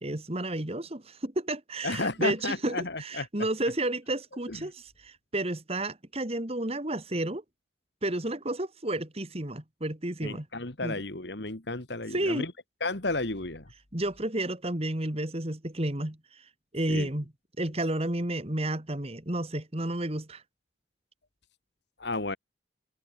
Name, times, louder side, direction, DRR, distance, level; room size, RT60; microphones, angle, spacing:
voice 1, 0.0-7.4 8.0-10.5 10.8-10.9 12.1-12.4 13.9-17.2 17.6-20.4, right 1 dB, 30° right, 2.1 m, -31 dB
voice 2, 1.8-3.3 4.5-4.7 10.2-12.5 12.8-13.7 16.9-17.1 22.0-22.4, left 2 dB, 60° left, 2.3 m, -32 dB
head